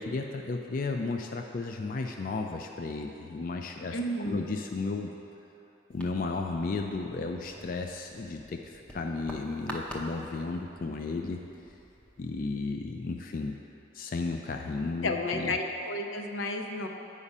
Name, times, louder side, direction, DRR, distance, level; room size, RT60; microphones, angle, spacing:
voice 1, 0.0-5.1 5.9-11.4 12.2-13.6 13.9-15.5, left 3 dB, 45° left, 3 dB, 0.3 m, -34 dB
voice 2, 3.9-4.5 15.0-16.9, left 2 dB, 90° left, 3 dB, 0.7 m, -32 dB
sound 1, 5.9-12.4, equal, 5° left, 0.6 m, -47 dB
8.4 x 5.0 x 5.4 m, 2.9 s
head